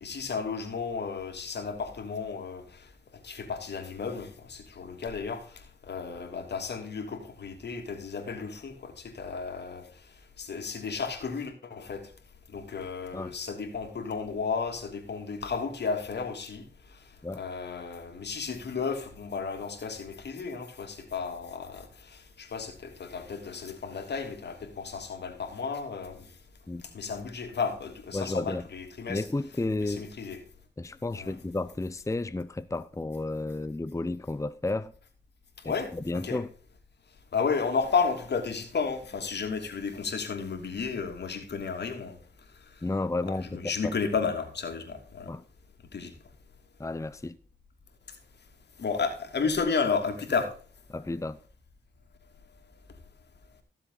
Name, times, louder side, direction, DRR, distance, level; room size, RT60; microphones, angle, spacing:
voice 1, 0.0-2.6 3.2-5.4 5.9-9.8 10.4-12.1 12.5-16.6 17.3-26.2 26.9-29.2 29.8-30.4 31.2-31.4 35.6-36.4 37.3-42.2 43.4-45.3 45.9-46.1 48.8-50.5, left 5 dB, 70° left, 3.0 m, -33 dB
voice 2, 28.1-28.7 29.1-30.1 30.8-34.9 35.6-36.5 42.8-44.0 45.3-45.4 46.8-47.4 50.9-51.4, left 2 dB, 15° left, 0.7 m, -32 dB
15.5 x 7.4 x 4.0 m
cardioid pair, 55°, 18 cm